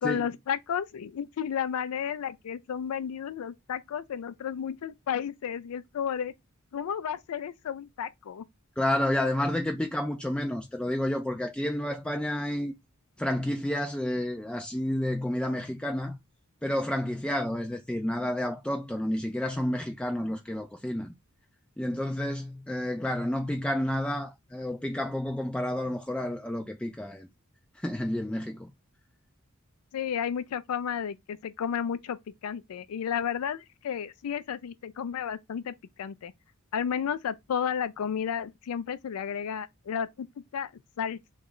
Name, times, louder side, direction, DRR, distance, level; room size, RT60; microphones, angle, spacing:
voice 1, 0.0-6.3 6.7-8.4 29.9-36.3 36.7-40.3 40.5-40.7 41.0-41.2, left 8 dB, 80° left, 0.4 m, -32 dB
voice 2, 8.8-12.7 13.2-16.1 16.6-21.1 21.8-27.3 27.8-28.7, left 1 dB, 5° left, 0.3 m, -30 dB
3.1 x 2.3 x 3.6 m
head